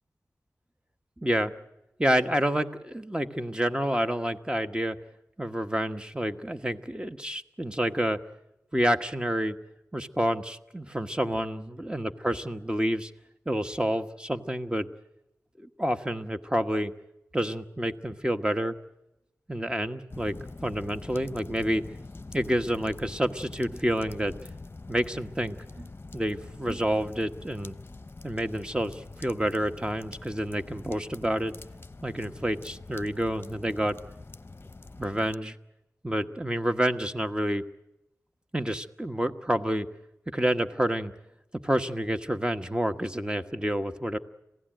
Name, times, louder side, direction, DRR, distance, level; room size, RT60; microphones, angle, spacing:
voice 1, 1.2-1.5 2.0-5.0 5.4-8.2 8.7-9.6 9.9-13.1 13.5-14.9 15.6-16.9 17.3-18.7 19.5-21.8 22.3-24.4 24.9-27.7 28.2-31.5 32.0-34.0 35.0-35.6 36.0-37.6 38.5-39.9 40.3-41.1 41.6-44.2, right 1 dB, 15° right, 8 dB, 1.3 m, -28 dB
sound 1, 20.1-35.3, left 3 dB, 40° left, 0.8 m, -44 dB
27.0 x 17.0 x 9.1 m, 0.91 s
cardioid pair, 50°, 6 cm